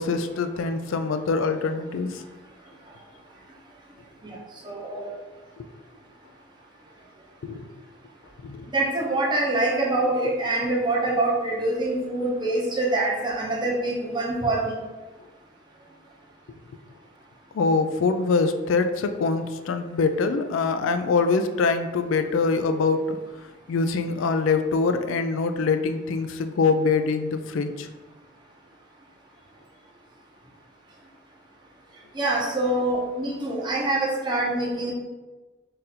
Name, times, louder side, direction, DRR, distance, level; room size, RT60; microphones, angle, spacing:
voice 1, 0.0-2.2 7.4-7.7 8.4-8.6 17.5-23.2 23.7-27.9, left 4 dB, 80° left, 8 dB, 0.4 m, -24 dB
voice 2, 4.6-5.0 8.7-14.7 32.2-34.9, right 2 dB, 20° right, -2 dB, 0.7 m, -25 dB
4.1 x 2.5 x 4.1 m, 1.2 s
head